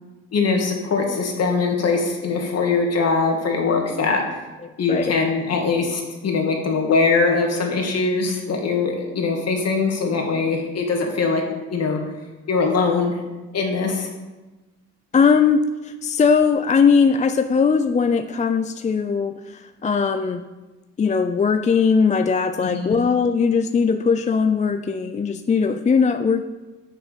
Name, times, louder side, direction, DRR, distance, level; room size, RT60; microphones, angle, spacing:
voice 1, 0.3-4.2 4.8-11.4 11.7-12.0 12.5-13.2 13.5-14.1 22.6-23.0, left 4 dB, 55° left, 2 dB, 1.9 m, -22 dB
voice 2, 4.6-5.2 15.1-20.4 21.0-26.4, left 5 dB, 25° left, 8 dB, 0.4 m, -19 dB
6.5 x 6.3 x 6.6 m, 1.1 s
cardioid pair, 90°, 30 cm